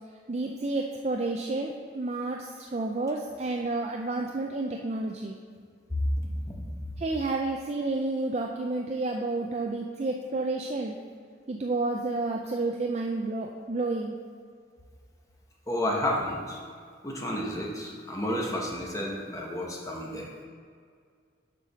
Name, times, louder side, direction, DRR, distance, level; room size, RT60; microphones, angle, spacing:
voice 1, 0.3-5.4 7.0-10.9 11.5-14.2, right 2 dB, 35° right, 1 dB, 0.4 m, -30 dB
voice 2, 15.7-16.6 17.0-20.3, left 1 dB, 15° left, -1 dB, 1.0 m, -31 dB
6.9 x 4.9 x 5.8 m, 2.1 s
head